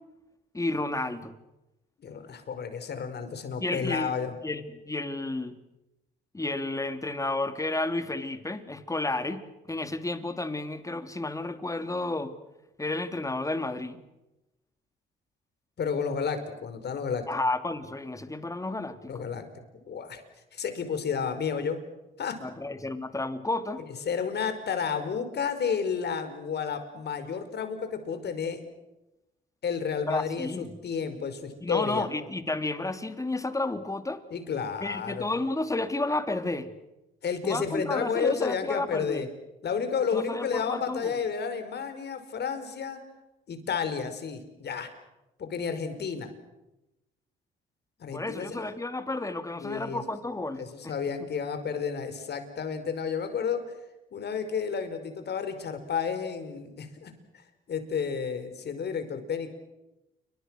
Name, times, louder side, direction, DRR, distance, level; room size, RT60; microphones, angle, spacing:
voice 1, 0.5-1.4 3.6-4.1 4.4-5.6 6.3-12.4 12.8-14.0 17.3-19.3 22.4-23.8 30.1-30.7 31.6-34.2 34.8-36.7 37.4-39.3 40.1-41.2 48.1-50.9, left 2 dB, 15° left, 9 dB, 2.7 m, -31 dB
voice 2, 2.0-4.3 15.8-17.2 19.0-19.5 19.9-20.2 20.5-21.8 22.2-22.4 24.0-28.6 29.6-32.1 34.3-35.3 37.2-39.3 39.6-43.0 43.5-44.9 45.4-46.3 48.0-48.7 49.6-50.0 50.6-53.6 54.1-57.1 57.7-59.5, left 6 dB, 55° left, 9 dB, 5.1 m, -31 dB
29.0 x 25.0 x 6.5 m, 0.95 s
cardioid pair, 90°, 20 cm